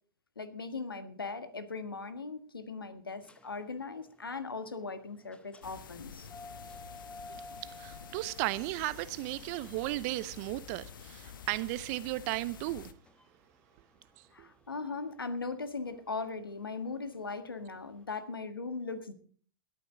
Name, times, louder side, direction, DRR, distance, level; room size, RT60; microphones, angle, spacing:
voice 1, 0.3-6.3 14.3-19.1, left 4 dB, 85° left, 1.6 m, -39 dB
sound 1, 3.2-17.9, left 2 dB, 10° left, 1.1 m, -54 dB
sound 2, 5.6-12.9, left 7 dB, 70° left, 1.1 m, -49 dB
voice 2, 7.6-12.9 14.4-14.5, right 19 dB, 45° right, 0.6 m, -35 dB
20.5 x 9.2 x 3.8 m
figure-of-eight pair, 100°, 12 cm